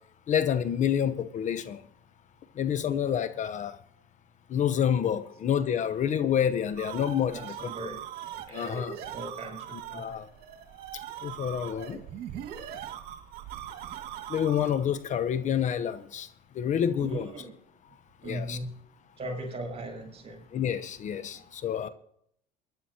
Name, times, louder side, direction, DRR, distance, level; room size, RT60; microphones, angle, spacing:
voice 1, 0.3-1.8 2.6-3.8 4.5-7.7 8.5-9.0 9.7-10.3 11.2-12.0 14.3-16.3 16.6-17.3 18.2-18.6 20.5-21.9, left 9 dB, 45° left, 13 dB, 0.8 m, -28 dB
sound 1, 6.7-15.0, right 10 dB, 60° right, 2.0 m, -41 dB
voice 2, 7.3-8.0 8.4-10.2 17.0-17.5 18.2-18.7 19.2-20.4, right 1 dB, 35° right, 1 dB, 6.8 m, -38 dB
22.5 x 11.5 x 2.9 m, 0.68 s
supercardioid pair, 90°, 18 cm